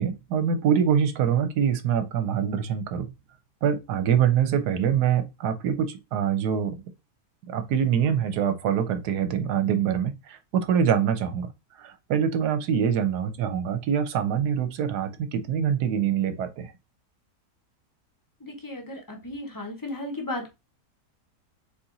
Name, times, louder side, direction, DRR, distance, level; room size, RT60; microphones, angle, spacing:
voice 1, 0.0-3.1 3.6-6.8 7.5-11.5 11.8-16.7, right 8 dB, 75° right, 1.2 m, -24 dB
voice 2, 18.4-20.5, left 1 dB, 15° left, 0.7 m, -35 dB
4.3 x 2.7 x 3.8 m
omnidirectional pair, 1.8 m